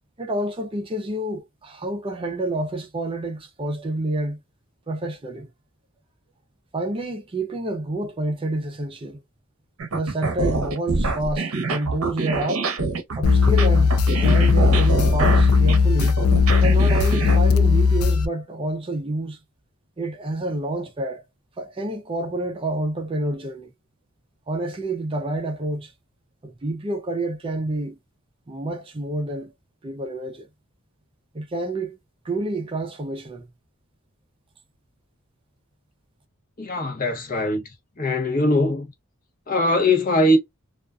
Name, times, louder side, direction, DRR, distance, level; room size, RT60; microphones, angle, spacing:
voice 1, 0.2-4.4 4.9-5.5 6.7-9.2 9.9-12.7 13.2-16.2 16.6-19.4 20.0-21.2 21.6-23.7 24.5-25.9 26.4-28.0 28.5-29.5 29.8-30.5 31.3-32.0 32.2-33.5, right 1 dB, 25° right, 0.4 m, -28 dB
sound 1, 9.8-17.4, right 3 dB, 70° right, 0.7 m, -25 dB
sound 2, 13.2-18.3, left 5 dB, 75° left, 0.4 m, -17 dB
voice 2, 36.6-37.6 38.0-38.9 39.5-40.4, left 1 dB, 40° left, 0.8 m, -21 dB
2.4 x 2.2 x 2.3 m
head